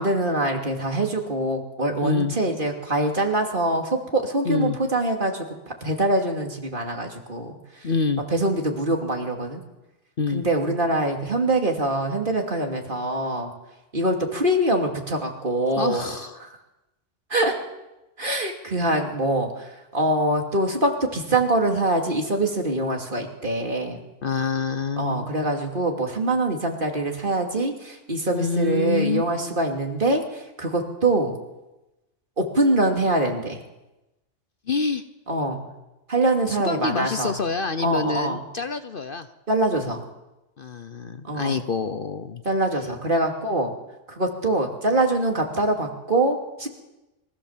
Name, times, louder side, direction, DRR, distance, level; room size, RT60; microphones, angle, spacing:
voice 1, 0.0-5.6 5.8-7.9 8.3-9.6 10.3-13.5 13.9-16.0 16.4-16.5 17.3-17.5 18.2-24.0 25.0-31.4 32.4-33.6 35.3-35.7 36.1-37.4 37.8-38.4 39.5-40.0 41.2-41.6 42.4-43.7 44.1-46.7, right 1 dB, 45° right, 2 dB, 3.0 m, -24 dB
voice 2, 2.0-2.3 4.4-4.8 7.8-8.2 10.2-10.5 15.8-16.4 24.2-25.3 28.3-29.2 34.7-35.0 36.5-39.3 40.6-42.4, left 4 dB, 50° left, 10 dB, 1.0 m, -26 dB
23.5 x 15.0 x 7.4 m, 0.99 s
omnidirectional pair, 1.3 m